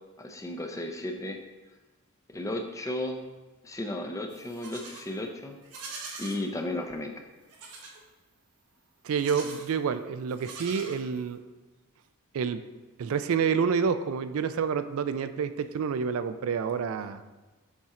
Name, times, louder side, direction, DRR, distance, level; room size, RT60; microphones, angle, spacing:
voice 1, 0.2-1.4 2.3-3.2 3.6-5.6 6.2-7.1, left 1 dB, 15° left, 5 dB, 0.4 m, -34 dB
Livestock farm animals working animals, 4.3-5.1 5.6-6.4 7.5-8.0 9.1-9.7 10.3-11.3, right 4 dB, 90° right, 1.1 m, -43 dB
voice 2, 9.0-11.4 12.3-12.6 13.0-17.2, right 6 dB, 70° right, 11 dB, 0.3 m, -28 dB
7.3 x 4.3 x 3.7 m, 1.2 s
head